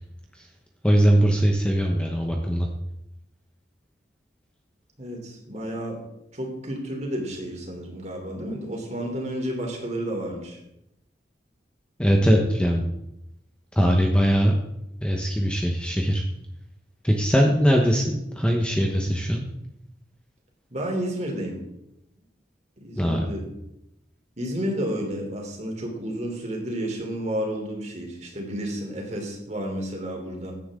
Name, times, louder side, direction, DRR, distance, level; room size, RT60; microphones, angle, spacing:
voice 1, 0.8-2.7 12.0-12.8 13.7-14.6 15.0-16.2 17.0-19.4 22.9-23.3, equal, 5° left, 1 dB, 1.1 m, -21 dB
voice 2, 5.0-6.0 6.3-10.6 20.7-21.5 22.8-23.4 24.4-30.5, equal, 40° right, 1 dB, 3.3 m, -31 dB
16.0 x 10.5 x 3.7 m, 0.84 s
head